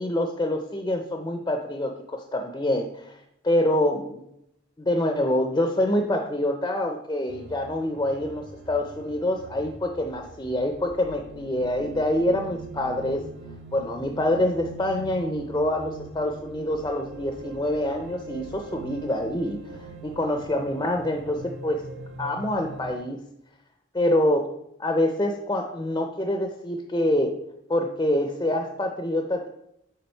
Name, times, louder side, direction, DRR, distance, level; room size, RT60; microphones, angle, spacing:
voice 1, 0.0-3.2 3.4-4.2 4.8-13.3 13.7-21.9 22.2-23.2 23.9-24.5 24.8-27.4 27.7-29.5, left 1 dB, 20° left, 4 dB, 0.4 m, -26 dB
sound 1, 7.3-23.0, right 2 dB, 70° right, 0.8 m, -42 dB
6.8 x 3.9 x 4.3 m, 0.79 s
head